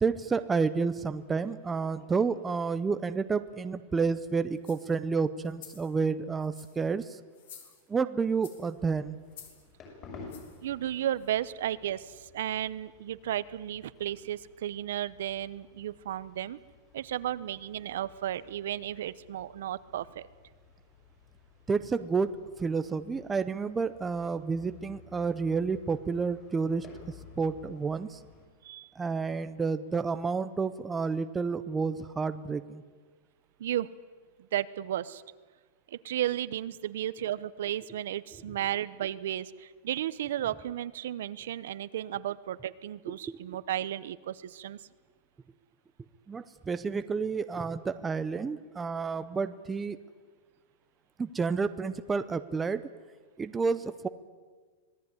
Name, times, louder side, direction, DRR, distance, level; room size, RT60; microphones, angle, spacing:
voice 1, 0.0-7.2 7.9-9.2 21.7-26.9 27.4-28.2 29.0-32.8 43.1-43.6 46.3-50.0 51.2-52.8 53.4-54.1, right 5 dB, 10° right, 11 dB, 0.7 m, -30 dB
sound 1, 4.6-4.9 5.4-5.9 6.4-6.9 7.3-8.0 8.4-8.7 9.3-9.6 10.3-10.6 11.2-11.3, left 8 dB, 60° left, 4.4 m, -51 dB
sound 2, 8.8-28.5, left 4 dB, 25° left, 6.4 m, -54 dB
voice 2, 10.6-16.6 16.9-20.3 28.6-28.9 33.6-33.9 34.5-35.2 35.9-44.8, right 12 dB, 70° right, 16 dB, 1.0 m, -34 dB
26.0 x 18.5 x 9.7 m, 1.4 s
supercardioid pair, 170°, 0 cm